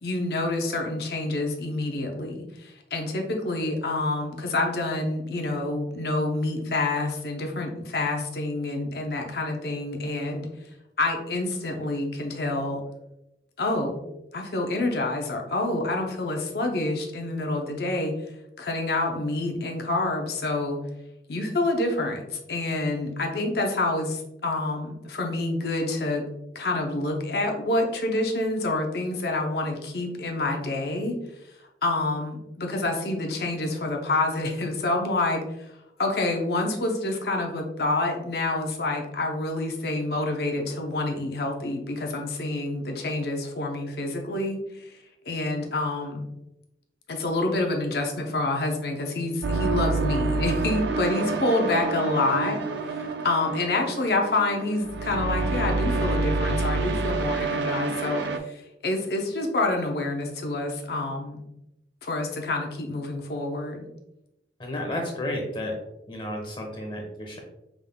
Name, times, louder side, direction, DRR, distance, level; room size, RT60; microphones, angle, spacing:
voice 1, 0.0-10.5 11.0-12.8 13.6-14.0 14.3-18.1 18.6-20.8 21.3-26.2 26.5-31.1 31.8-35.7 36.0-45.0 45.3-46.2 47.1-61.4 62.0-63.9, left 2 dB, 65° left, 2 dB, 0.6 m, -27 dB
sound 1, 49.4-58.4, right 3 dB, 80° right, 0.4 m, -27 dB
voice 2, 64.6-65.8 66.1-67.4, left 1 dB, 25° left, 0 dB, 0.9 m, -32 dB
5.2 x 3.6 x 2.2 m, 0.88 s
head